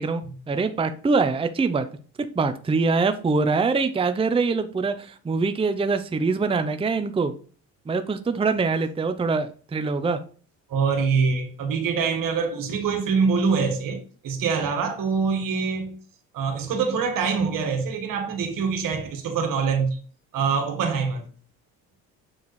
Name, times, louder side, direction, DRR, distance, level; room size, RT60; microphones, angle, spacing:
voice 1, 0.0-1.9 2.3-7.3 7.9-10.2, right 4 dB, 15° right, 0.6 m, -24 dB
voice 2, 10.7-16.0 16.3-20.0 20.3-21.2, right 5 dB, 75° right, 1.5 m, -24 dB
7.2 x 4.6 x 3.2 m
supercardioid pair, 80°, 34 cm